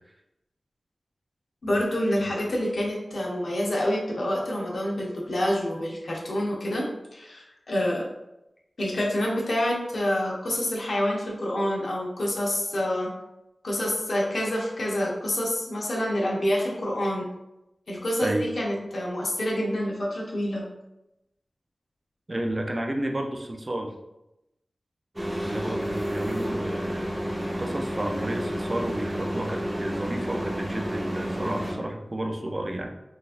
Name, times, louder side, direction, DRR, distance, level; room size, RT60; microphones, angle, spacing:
voice 1, 1.6-8.1 8.8-13.1 13.6-17.3 17.9-20.7, left 1 dB, 75° left, -3 dB, 0.8 m, -27 dB
voice 2, 22.3-23.9 25.4-32.9, right 1 dB, 35° right, 3 dB, 0.4 m, -31 dB
sound 1, 25.2-31.7, equal, 15° right, 0.8 m, -31 dB
3.9 x 2.5 x 2.5 m, 0.90 s
wide cardioid pair, 65°, 0 cm